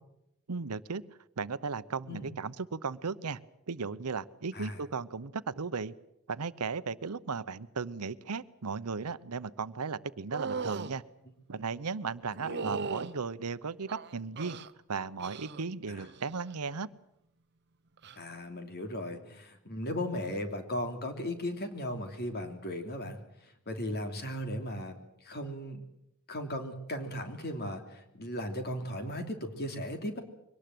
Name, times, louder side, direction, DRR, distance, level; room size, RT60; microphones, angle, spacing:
voice 1, 0.5-1.0 1.4-3.4 3.7-5.9 6.3-11.0 11.5-14.6 14.9-16.9, right 5 dB, 90° right, 16 dB, 0.8 m, -36 dB
voice 2, 4.5-4.8 12.5-12.8 18.2-23.2 23.7-25.0 25.2-25.8 26.3-30.2, left 1 dB, 45° left, 6 dB, 3.0 m, -36 dB
sound 1, 10.3-10.9 12.4-13.1 13.9-14.7 15.2-15.6 16.0-16.4 18.0-18.2, right 4 dB, 50° right, 0.9 m, -37 dB
23.5 x 19.0 x 7.8 m, 0.81 s
head